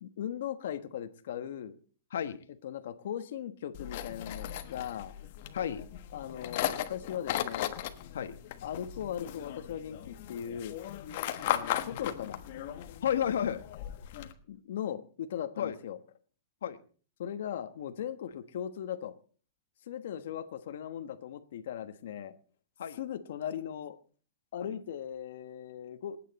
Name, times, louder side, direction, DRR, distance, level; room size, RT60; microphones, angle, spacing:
voice 1, 0.0-1.7 2.6-5.1 6.1-7.8 8.6-10.8 11.3-12.4 14.5-16.0 17.2-19.1 19.9-22.4 23.0-24.0 24.5-26.2, left 9 dB, 65° left, 8 dB, 1.2 m, -38 dB
voice 2, 2.1-2.4 5.5-5.8 8.1-8.4 13.0-13.6 15.6-15.8 16.6-16.8 22.8-23.0 24.6-24.7, left 9 dB, 90° left, 10 dB, 1.3 m, -31 dB
sound 1, 3.7-14.3, left 12 dB, 45° left, 1.3 m, -37 dB
27.5 x 9.2 x 4.1 m, 0.41 s
supercardioid pair, 170°, 0 cm